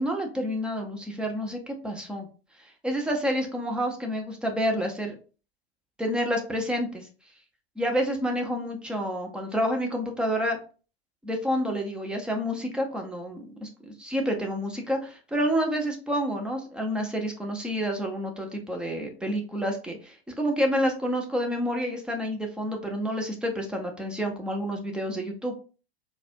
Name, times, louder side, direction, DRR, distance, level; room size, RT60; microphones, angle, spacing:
voice 1, 0.0-2.3 2.6-5.1 6.0-7.1 7.8-10.6 11.2-25.6, equal, 5° right, 2 dB, 0.4 m, -29 dB
4.0 x 2.2 x 2.5 m, 0.36 s
figure-of-eight pair, 90°, 32 cm